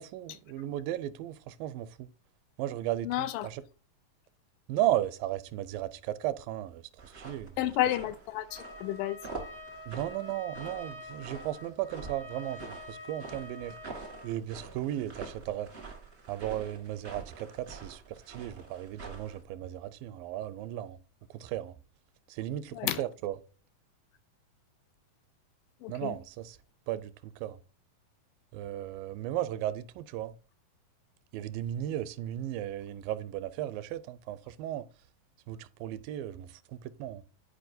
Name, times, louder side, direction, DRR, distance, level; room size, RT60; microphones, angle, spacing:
voice 1, 0.0-2.1 2.6-3.6 4.7-7.6 9.9-13.8 14.2-15.7 16.3-21.0 21.3-21.8 22.3-23.4 25.9-26.6 26.9-27.6 28.5-30.4 31.3-34.9 35.5-37.2, right 13 dB, 85° right, 2.2 m, -35 dB
voice 2, 3.0-3.5 7.6-9.2 22.7-23.0 25.8-26.2, left 14 dB, 80° left, 2.2 m, -31 dB
sound 1, 7.0-19.4, right 4 dB, 45° right, 0.8 m, -46 dB
Trumpet, 8.5-14.4, left 1 dB, 45° left, 0.4 m, -47 dB
10.5 x 4.8 x 2.6 m
omnidirectional pair, 4.0 m